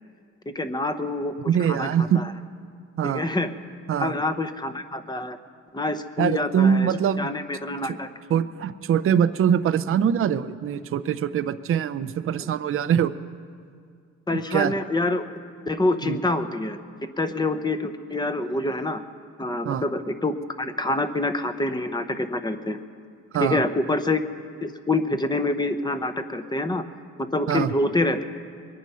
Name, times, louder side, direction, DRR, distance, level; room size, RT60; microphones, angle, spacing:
voice 1, 0.5-2.3 3.0-3.5 3.9-5.4 5.7-8.1 14.3-15.2 15.7-16.8 17.2-19.0 19.4-22.8 23.4-24.2 24.6-26.8 27.3-28.2, left 2 dB, 15° left, 8 dB, 0.9 m, -26 dB
voice 2, 1.5-2.2 3.0-3.3 3.9-4.1 6.2-7.3 7.9-8.0 8.3-13.1 14.3-14.7 16.0-16.2 19.6-19.8 23.3-23.6 27.5-27.7, right 8 dB, 45° right, 12 dB, 0.5 m, -23 dB
22.5 x 9.3 x 5.6 m, 2.2 s
cardioid pair, 90°, 30 cm